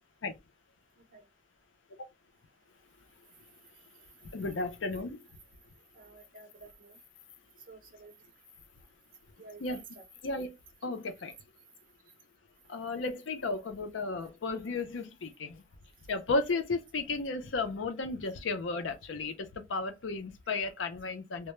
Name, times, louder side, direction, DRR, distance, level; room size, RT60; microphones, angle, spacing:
voice 1, 4.2-5.2 9.6-9.8 10.2-10.6 10.8-11.3 12.7-15.6 16.1-21.5, left 3 dB, 80° left, 0.5 m, -34 dB
voice 2, 5.9-7.0 7.7-8.3 9.4-10.1, right 4 dB, 45° right, 0.7 m, -52 dB
2.2 x 2.0 x 2.9 m
head